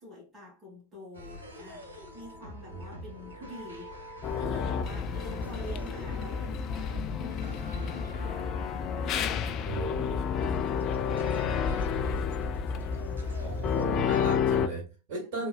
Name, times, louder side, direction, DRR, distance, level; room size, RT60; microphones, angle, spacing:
voice 1, 0.0-4.0 4.3-13.6 15.2-15.5, left 1 dB, 15° right, 2.2 m, -48 dB
sound 1, 1.1-13.8, equal, 70° right, 1.4 m, -45 dB
sound 2, 4.2-14.7, left 7 dB, 35° left, 0.4 m, -30 dB
voice 2, 9.7-10.0 13.4-15.5, right 3 dB, 45° right, 2.2 m, -36 dB
4.0 x 3.5 x 2.4 m
figure-of-eight pair, 90°, 0 cm